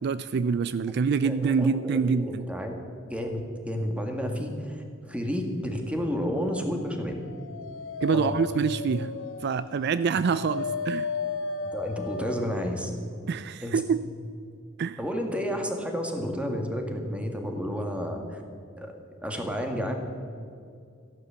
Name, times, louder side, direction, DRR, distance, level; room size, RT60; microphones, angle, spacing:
voice 1, 0.0-2.5 8.0-9.1 9.4-11.1 13.3-14.0 14.8-15.0, right 5 dB, 55° right, 14 dB, 0.4 m, -26 dB
voice 2, 1.2-2.7 3.0-7.2 8.1-8.5 10.1-10.2 11.6-12.9 13.6-13.8 15.0-18.4 18.8-18.9 19.2-19.9, equal, 5° right, 3 dB, 1.7 m, -31 dB
Dog, 7.1-12.7, left 4 dB, 75° left, 0.6 m, -34 dB
14.5 x 11.0 x 6.9 m, 2.4 s
head